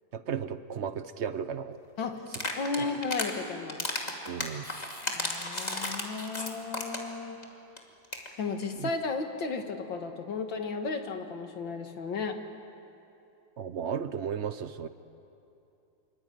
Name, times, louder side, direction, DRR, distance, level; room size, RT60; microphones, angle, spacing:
voice 1, 0.1-1.8 2.8-2.9 4.3-4.7 8.8-8.9 13.6-14.9, right 7 dB, 55° right, 12 dB, 0.8 m, -34 dB
sound 1, 2.3-3.3 3.7-7.1 7.4-7.5 7.8-7.9 8.0-8.3, left 1 dB, 20° left, 2.5 m, -34 dB
voice 2, 2.6-3.8 5.0-7.4 8.4-12.4, left 4 dB, 85° left, 6 dB, 2.4 m, -34 dB
25.5 x 24.0 x 9.3 m, 2.8 s
omnidirectional pair, 2.0 m